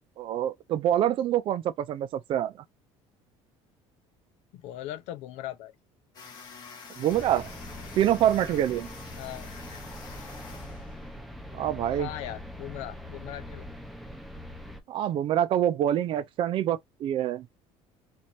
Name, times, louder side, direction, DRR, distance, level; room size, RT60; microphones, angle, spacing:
voice 1, 0.2-2.5 7.0-7.5 8.0-8.9 11.5-12.1 14.9-17.5, right 11 dB, 45° right, 0.5 m, -26 dB
voice 2, 4.5-5.7 9.2-9.5 11.9-13.6, left 13 dB, 75° left, 0.7 m, -39 dB
sound 1, 6.1-11.3, left 5 dB, 35° left, 1.7 m, -47 dB
sound 2, 7.1-14.8, left 1 dB, ahead, 0.7 m, -42 dB
4.5 x 2.6 x 2.7 m
cardioid pair, 155°, 12 cm